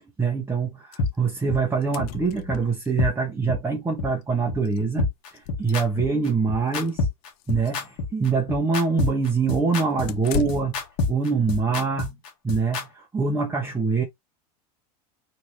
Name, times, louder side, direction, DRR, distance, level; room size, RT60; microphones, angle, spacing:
voice 1, 0.2-7.1 7.5-10.8 11.1-12.2 12.4-14.0, right 4 dB, 10° right, 0.8 m, -24 dB
sound 1, 0.9-1.1 1.4-1.5 1.7-2.9 4.2-4.3 4.7-4.8 5.3-6.2 6.7-6.9 7.4-7.9 10.1-10.9, left 8 dB, 50° left, 0.6 m, -35 dB
sound 2, 1.0-1.1 1.5-1.6 2.0-2.1 2.5-2.6 3.0-3.1 3.5-3.6 4.0-4.1 4.5-4.6 5.0-12.8, left 3 dB, 70° left, 1.7 m, -26 dB
4.3 x 3.2 x 3.0 m
supercardioid pair, 120°, 20 cm